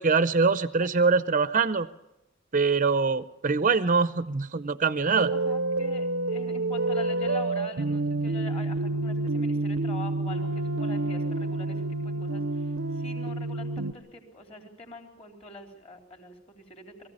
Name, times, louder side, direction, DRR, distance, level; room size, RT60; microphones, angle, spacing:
voice 1, 0.0-1.9 2.5-5.3, right 4 dB, 40° right, 14 dB, 0.7 m, -23 dB
sound 1, 5.1-13.9, right 2 dB, 75° right, 0.7 m, -28 dB
voice 2, 5.3-12.7 12.9-17.1, left 2 dB, 30° left, 3 dB, 3.8 m, -44 dB
22.0 x 15.5 x 8.8 m, 0.94 s
head